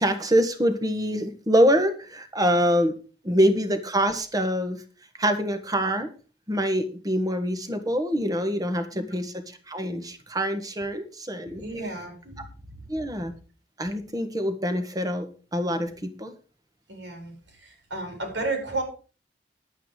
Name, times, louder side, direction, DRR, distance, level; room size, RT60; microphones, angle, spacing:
voice 1, 0.0-2.9 3.2-4.8 5.2-6.1 6.5-11.6 12.9-13.3 13.8-16.3, equal, 20° right, 7 dB, 1.6 m, -25 dB
voice 2, 11.6-12.4 16.9-17.3 17.6-18.8, right 2 dB, 80° right, 3 dB, 4.7 m, -32 dB
11.0 x 9.1 x 4.9 m, 0.37 s
head